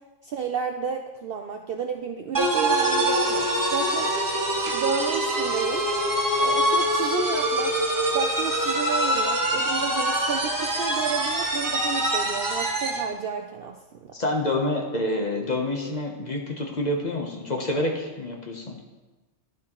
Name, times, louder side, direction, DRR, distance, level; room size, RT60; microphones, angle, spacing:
voice 1, 0.2-4.1 4.7-5.9 6.4-7.8 8.1-14.1, right 6 dB, 65° right, 4 dB, 0.6 m, -31 dB
sound 1, 2.3-13.1, right 1 dB, 20° right, 0.8 m, -24 dB
voice 2, 14.1-18.8, left 1 dB, 35° left, 1 dB, 0.9 m, -27 dB
11.5 x 6.1 x 3.0 m, 1.2 s
omnidirectional pair, 1.4 m